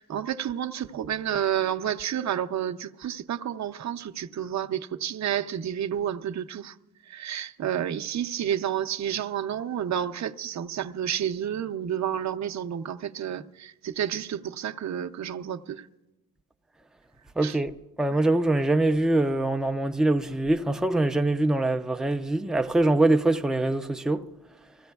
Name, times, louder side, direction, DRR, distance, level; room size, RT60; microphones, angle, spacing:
voice 1, 0.0-6.8 7.1-15.9 17.4-17.6 18.1-18.2, right 9 dB, 50° right, 0.5 m, -30 dB
voice 2, 17.4-24.2, right 2 dB, ahead, 0.4 m, -24 dB
24.0 x 15.5 x 2.3 m
wide cardioid pair, 140°, 37 cm